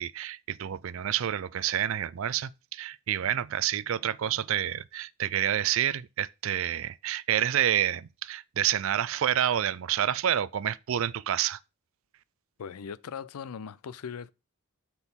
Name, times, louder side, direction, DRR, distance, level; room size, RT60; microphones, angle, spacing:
voice 1, 0.0-11.6, right 10 dB, 65° right, 0.4 m, -28 dB
voice 2, 12.6-14.3, left 6 dB, 85° left, 0.4 m, -39 dB
7.9 x 4.5 x 3.6 m
head